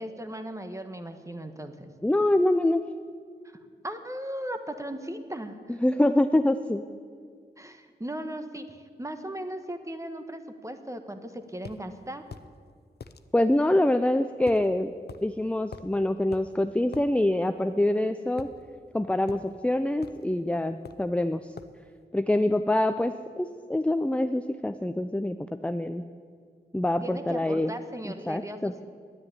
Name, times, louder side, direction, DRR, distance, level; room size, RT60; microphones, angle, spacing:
voice 1, 0.0-1.9 3.4-3.6 3.8-5.8 7.6-12.2 27.0-28.8, right 1 dB, 15° right, 8 dB, 1.3 m, -37 dB
voice 2, 2.0-2.8 5.8-6.8 13.3-14.9 15.2-18.5 18.9-21.4 22.1-26.0 26.7-27.7 28.3-28.7, left 1 dB, 5° left, 9 dB, 0.5 m, -25 dB
sound 1, 11.6-11.8 12.3-12.5 13.0-13.2 14.5-14.7 15.1-15.2 15.7-16.0 16.3-16.5 16.9-17.1 18.4-18.9 19.3-19.5 20.0-20.3 20.8-21.1 21.6-21.8, left 5 dB, 65° left, 0.7 m, -43 dB
10.0 x 9.6 x 9.9 m, 2.1 s
cardioid pair, 50°, 18 cm